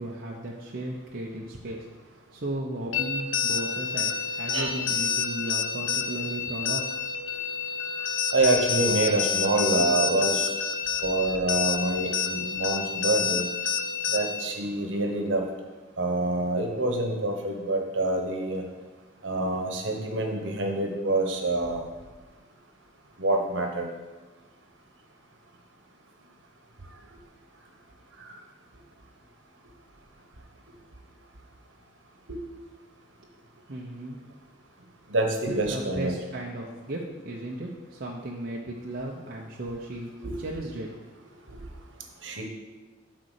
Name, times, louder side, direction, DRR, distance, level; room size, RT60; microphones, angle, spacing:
voice 1, 0.0-6.9 33.7-34.2 35.5-40.1 40.4-40.9 41.2-41.7, right 1 dB, 50° right, -2 dB, 0.8 m, -36 dB
sound 1, 2.9-14.5, left 6 dB, 90° left, 0.6 m, -29 dB
voice 2, 8.3-10.5 11.0-13.4 14.1-15.4 16.0-18.6 19.2-21.8 23.2-23.9 32.3-32.4 35.1-36.1 40.2-40.4 41.5-41.6 42.2-42.4, right 2 dB, 70° right, 2 dB, 1.2 m, -26 dB
8.2 x 4.2 x 6.6 m, 1.3 s
head